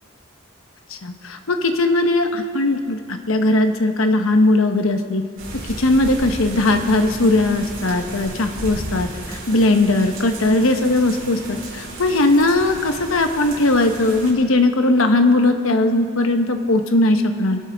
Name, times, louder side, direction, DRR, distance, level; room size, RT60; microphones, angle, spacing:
voice 1, 0.9-5.2 5.6-17.6, left 2 dB, 80° left, 6 dB, 1.0 m, -18 dB
sound 1, 5.4-14.3, right 1 dB, 65° right, 4.5 m, -34 dB
23.5 x 12.5 x 3.5 m, 2.2 s
head